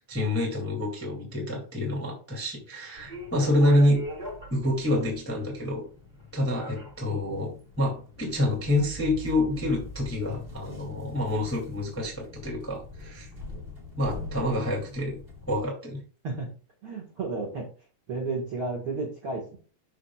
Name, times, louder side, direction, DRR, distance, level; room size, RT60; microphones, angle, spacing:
voice 1, 0.1-4.0 4.5-5.8 6.3-13.3 14.0-15.2 15.5-16.0, left 1 dB, 5° left, -2 dB, 1.5 m, -27 dB
sound 1, 2.9-15.6, left 3 dB, 25° right, 1.3 m, -42 dB
voice 2, 16.8-17.7 18.1-19.6, right 3 dB, 50° right, -3 dB, 1.8 m, -32 dB
12.5 x 5.0 x 2.4 m, 0.38 s
omnidirectional pair, 4.5 m